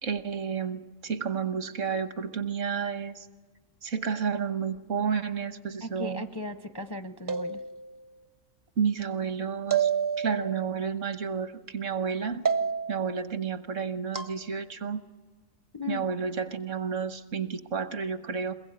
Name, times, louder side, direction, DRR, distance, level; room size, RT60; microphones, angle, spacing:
voice 1, 0.0-3.2 3.8-6.2 8.8-9.9 10.2-12.4 12.9-15.0 15.9-18.5, right 6 dB, 70° right, 10 dB, 1.4 m, -31 dB
voice 2, 5.8-7.6 15.7-16.0, left 2 dB, 30° left, 9 dB, 0.5 m, -36 dB
sound 1, 7.3-8.1 9.7-10.7 12.5-13.1 14.1-14.4, right 7 dB, 25° right, 0.5 m, -28 dB
22.5 x 21.0 x 8.4 m, 1.3 s
omnidirectional pair, 1.4 m